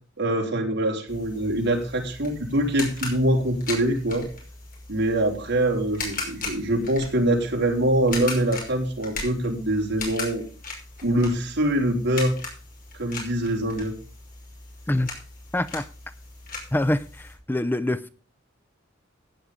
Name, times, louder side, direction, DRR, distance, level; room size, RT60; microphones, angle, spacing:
voice 1, 0.2-4.3 4.9-10.4 11.0-12.4 13.0-13.9, right 1 dB, 60° right, 1 dB, 4.1 m, -24 dB
sound 1, 1.1-17.4, left 3 dB, 45° left, 5.5 m, -38 dB
voice 2, 15.5-15.8 16.7-18.1, left 1 dB, 10° left, 13 dB, 0.5 m, -25 dB
15.5 x 9.7 x 3.7 m, 0.36 s
head